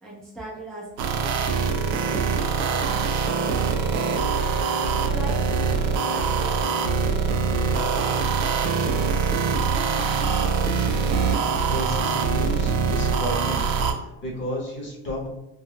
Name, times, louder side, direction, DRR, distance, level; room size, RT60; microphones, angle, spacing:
voice 1, 0.0-2.5 2.8-3.0 3.5-7.4, right 1 dB, ahead, -6 dB, 0.4 m, -40 dB
sound 1, 1.0-13.9, right 5 dB, 85° right, 0.5 m, -23 dB
voice 2, 11.7-13.6 13.9-15.3, equal, 30° left, -3 dB, 0.9 m, -32 dB
2.3 x 2.1 x 3.3 m, 0.94 s
cardioid pair, 140°, 39 cm